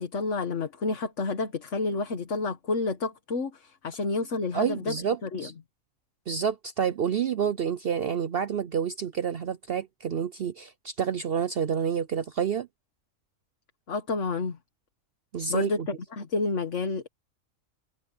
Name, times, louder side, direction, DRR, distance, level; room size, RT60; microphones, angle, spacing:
voice 1, 0.0-5.5 13.9-14.6 15.5-17.1, left 3 dB, 60° left, 1.8 m, -30 dB
voice 2, 4.5-5.5 6.3-12.7 15.3-15.9, right 7 dB, 55° right, 0.8 m, -29 dB
open air
omnidirectional pair, 1.4 m